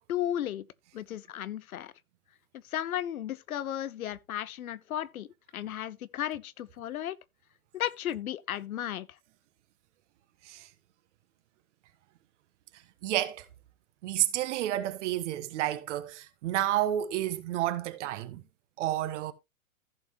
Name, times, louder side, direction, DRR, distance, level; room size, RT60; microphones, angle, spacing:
voice 1, 0.1-0.6 0.9-1.9 2.6-5.3 5.5-7.2 7.7-9.1, left 11 dB, 80° left, 0.9 m, -34 dB
voice 2, 13.0-13.4 14.0-18.4 18.8-19.3, right 13 dB, 55° right, 1.3 m, -30 dB
15.0 x 5.5 x 3.1 m
hypercardioid pair, 125°, 43 cm